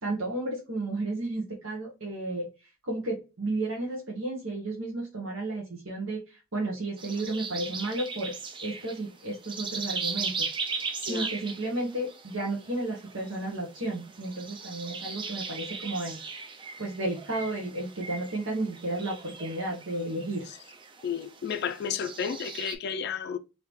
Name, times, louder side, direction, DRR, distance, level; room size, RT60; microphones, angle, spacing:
voice 1, 0.0-2.5 2.8-8.3 8.6-10.5 11.0-16.2 16.8-20.4, right 2 dB, 70° right, 1.0 m, -33 dB
sound 1, 7.0-22.8, right 5 dB, 25° right, 0.4 m, -38 dB
voice 2, 21.0-23.4, left 7 dB, 50° left, 0.3 m, -32 dB
3.5 x 2.8 x 3.0 m
head